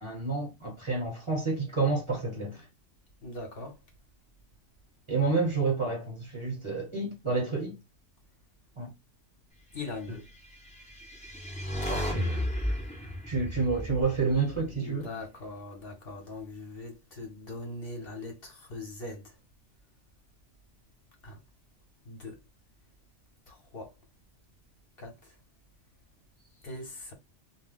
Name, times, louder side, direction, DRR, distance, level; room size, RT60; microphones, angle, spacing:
voice 1, 0.0-2.6 5.1-7.8 8.8-8.9 10.1-10.2 11.9-12.5 13.2-15.1, right 4 dB, 25° right, 0.9 m, -29 dB
voice 2, 3.2-3.8 9.7-10.2 14.8-19.3 21.2-21.4 22.1-22.4 23.5-23.9 25.0-25.3 26.6-27.1, left 2 dB, 55° left, 1.1 m, -41 dB
sound 1, 10.7-15.0, left 1 dB, 5° left, 0.7 m, -34 dB
2.3 x 2.1 x 3.5 m
omnidirectional pair, 1.2 m